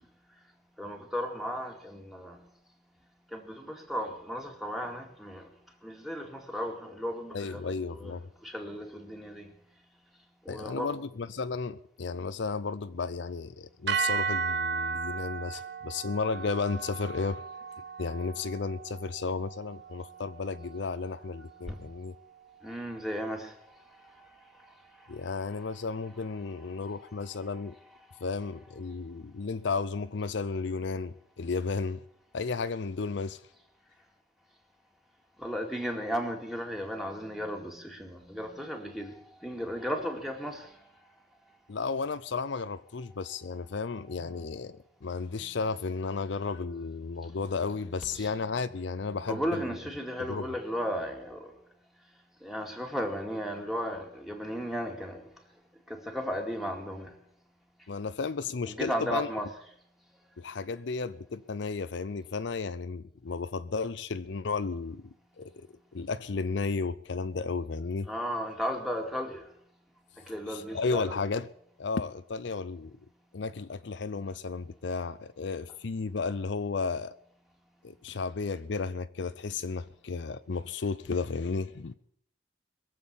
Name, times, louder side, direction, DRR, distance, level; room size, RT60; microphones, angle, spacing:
voice 1, 0.8-2.4 3.3-5.5 5.8-8.2 8.4-9.5 10.5-10.9 21.7-21.8 22.6-23.5 35.4-39.1 39.4-40.7 47.2-47.3 48.1-48.3 49.3-51.5 52.4-55.2 55.9-57.1 58.6-59.5 68.1-69.4 70.3-71.2, equal, ahead, 2.3 m, -35 dB
voice 2, 7.3-8.3 10.5-17.4 18.0-22.2 25.1-27.8 28.2-32.0 32.3-33.4 41.7-49.6 50.3-50.5 57.9-59.3 60.4-65.7 65.9-68.1 70.5-71.5 71.8-73.0 73.3-77.1 77.8-81.9, left 4 dB, 65° left, 0.5 m, -33 dB
sound 1, 13.9-22.1, right 5 dB, 60° right, 1.0 m, -35 dB
22.0 x 7.6 x 8.6 m
head